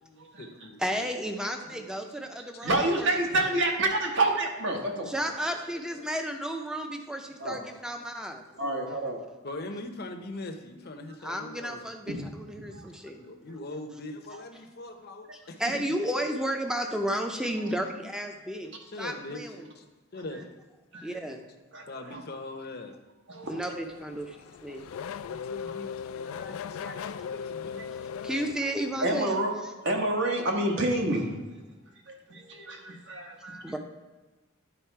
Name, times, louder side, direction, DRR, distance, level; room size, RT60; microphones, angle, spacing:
voice 1, 0.0-1.1 1.6-2.2 2.5-2.7 5.5-6.1 7.7-7.8 8.5-8.7 9.4-11.9 13.1-15.9 18.9-19.8 20.1-20.4 21.9-22.9 24.5-27.9, left 2 dB, 50° left, 5 dB, 0.7 m, -42 dB
voice 2, 0.8-2.7 3.0-3.1 5.1-8.4 11.2-13.2 15.6-18.7 19.0-19.7 21.0-21.4 23.5-24.4 24.6-24.9 28.2-29.3 33.6-33.8, equal, 5° right, 4 dB, 0.6 m, -32 dB
voice 3, 2.6-5.1 7.4-7.6 8.6-9.2 12.1-12.3 12.5-12.9 20.9-21.1 21.7-21.8 22.1-22.2 23.3-23.6 27.7-27.9 29.0-29.5 29.8-31.3 32.1-33.6, right 2 dB, 60° right, 1 dB, 1.2 m, -28 dB
Race car auto racing / Accelerating revving vroom, 23.7-29.3, left 7 dB, 75° left, 0.3 m, -38 dB
10.0 x 4.0 x 4.6 m, 1.2 s
head